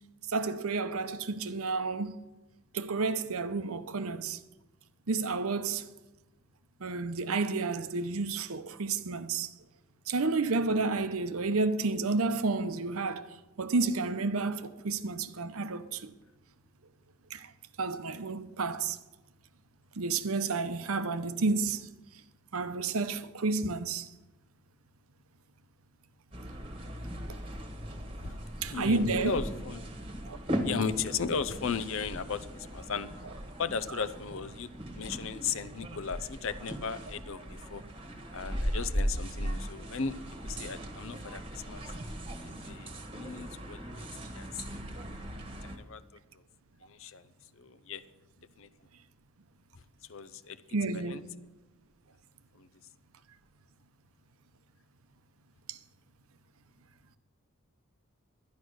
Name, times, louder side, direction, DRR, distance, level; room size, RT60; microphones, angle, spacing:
voice 1, 0.3-2.2 2.7-4.4 5.1-5.9 6.8-9.5 10.1-13.3 13.6-16.1 17.3-17.5 17.8-19.0 20.0-21.9 22.5-24.1 28.6-29.4 30.3-30.4 50.7-51.3 55.7-55.8, right 3 dB, 75° right, 0.8 m, -31 dB
sound 1, 26.3-45.8, equal, 25° right, 1.3 m, -38 dB
voice 2, 28.7-29.9 30.6-33.1 33.6-34.7 34.9-37.8 38.3-40.2 40.4-41.8 42.4-44.1 44.3-44.8 45.6-46.0 46.8-47.2 47.6-48.0 48.6-48.7 50.1-50.6 50.9-51.2 52.6-52.7, left 6 dB, 60° left, 0.6 m, -36 dB
11.5 x 10.5 x 6.3 m
head